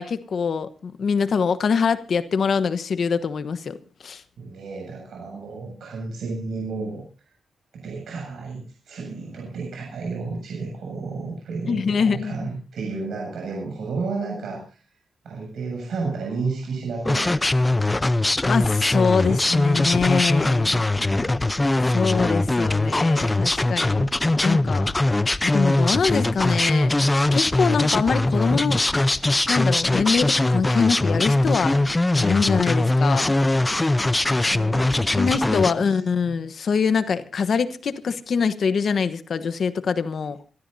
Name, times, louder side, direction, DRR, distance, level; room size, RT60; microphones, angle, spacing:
voice 1, 0.0-3.8 4.0-4.2 11.7-12.5 18.4-20.8 21.9-24.1 24.4-24.9 25.4-26.9 27.3-28.8 29.5-31.8 32.1-33.3 35.2-40.4, left 5 dB, 55° left, 1.1 m, -24 dB
voice 2, 4.4-7.3 7.7-14.8 15.2-17.6 19.0-19.8 34.2-36.0, right 4 dB, 80° right, 7.6 m, -32 dB
sound 1, 17.1-35.7, left 2 dB, 15° left, 0.6 m, -21 dB
27.0 x 14.0 x 2.7 m
wide cardioid pair, 120°, 0 cm